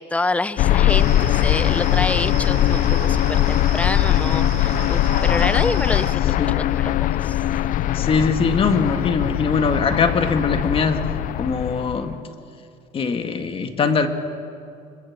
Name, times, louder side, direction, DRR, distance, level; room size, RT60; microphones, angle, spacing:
voice 1, 0.0-7.4, left 2 dB, 10° left, 16 dB, 0.6 m, -27 dB
sound 1, 0.6-12.1, left 13 dB, 55° left, 0.6 m, -21 dB
sound 2, 0.9-6.1, right 10 dB, 90° right, 1.9 m, -35 dB
voice 2, 7.9-11.0 11.4-12.2 12.9-14.1, left 5 dB, 35° left, 7 dB, 1.9 m, -21 dB
25.0 x 22.0 x 7.4 m, 2.5 s
cardioid pair, 125°, 16 cm